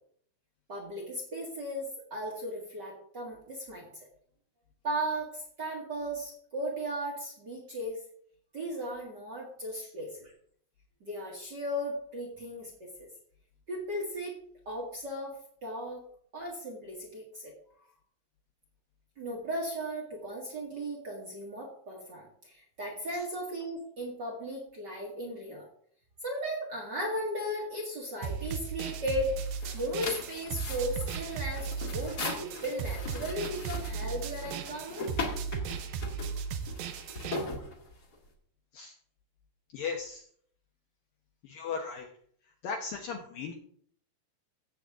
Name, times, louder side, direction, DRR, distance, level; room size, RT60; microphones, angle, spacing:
voice 1, 0.7-4.0 4.8-8.0 8.5-10.3 11.0-13.1 13.7-14.4 14.6-16.1 16.3-17.5 19.2-25.7 26.2-29.3 29.7-35.1, equal, 55° right, -2 dB, 1.1 m, -36 dB
sound 1, 28.2-37.4, right 6 dB, 80° right, 2.1 m, -36 dB
sound 2, 29.1-38.3, left 3 dB, 45° left, 1.2 m, -39 dB
voice 2, 39.7-40.2 41.4-42.1 42.6-43.5, left 5 dB, 70° left, 1 dB, 2.2 m, -36 dB
16.5 x 8.1 x 3.6 m, 0.62 s
omnidirectional pair, 5.3 m